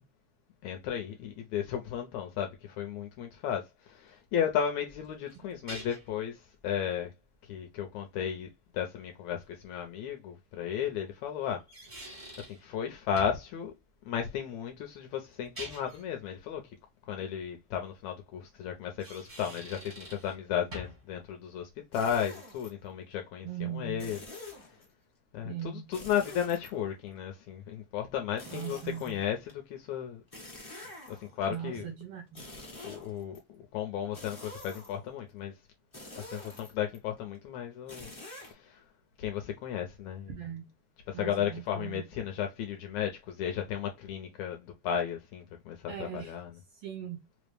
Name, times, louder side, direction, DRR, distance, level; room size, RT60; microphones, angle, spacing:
voice 1, 0.6-7.1 7.5-11.6 12.5-13.7 14.1-16.6 17.1-24.2 25.3-30.2 31.1-31.9 32.8-35.5 36.3-38.1 38.4-38.8 39.2-40.3 41.1-46.5, left 9 dB, 80° left, 1.8 m, -34 dB
sound 1, 4.9-6.2 9.4-9.5 11.4-12.6 13.2-13.5 15.3-16.1 18.8-20.4 20.7-21.1, equal, 45° right, 0.4 m, -45 dB
sound 2, 21.9-22.7 24.0-24.9 25.9-27.2 28.4-29.5 30.3-31.4 32.3-33.4 34.1-35.1 35.9-37.0 37.9-38.5, left 1 dB, 60° left, 0.3 m, -47 dB
voice 2, 23.4-24.2 25.4-25.9 28.5-29.2 31.5-32.5 40.3-40.7 41.1-42.0 45.9-46.4 46.7-47.2, right 9 dB, 75° right, 1.3 m, -39 dB
5.0 x 2.0 x 3.2 m
omnidirectional pair, 3.6 m